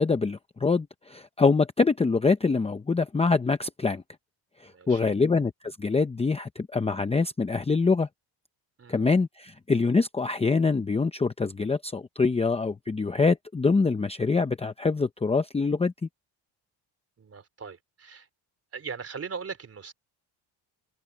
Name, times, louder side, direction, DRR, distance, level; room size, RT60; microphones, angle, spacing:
voice 1, 0.0-4.0 4.6-8.1 8.9-16.1, left 4 dB, 15° left, 0.7 m, -25 dB
voice 2, 4.6-5.2 8.8-9.0 17.2-18.3 18.7-19.9, right 5 dB, 35° right, 4.1 m, -39 dB
cardioid pair, 155°, 43 cm